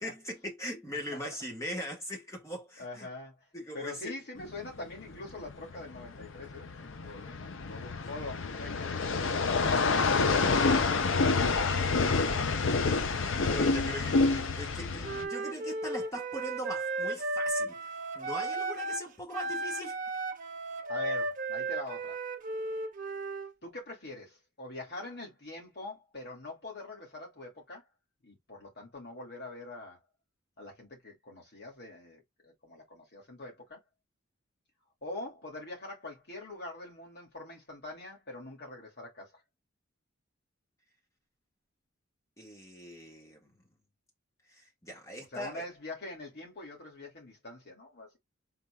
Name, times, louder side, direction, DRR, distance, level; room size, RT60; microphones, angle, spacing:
voice 1, 0.0-3.1 3.5-4.1 9.9-10.6 12.8-17.8 18.2-20.0 42.4-43.5 44.5-45.6, equal, 15° left, 1.8 m, -41 dB
voice 2, 2.8-3.5 3.7-9.7 20.9-22.2 23.6-27.9 28.2-30.0 30.6-33.8 35.0-39.4 45.3-48.2, left 2 dB, 55° left, 2.7 m, -44 dB
sound 1, 4.4-15.2, left 4 dB, 75° left, 0.7 m, -28 dB
Wind instrument woodwind instrument, 15.0-19.1 19.3-23.5, right 2 dB, 40° right, 0.9 m, -35 dB
4.3 x 3.9 x 2.3 m
head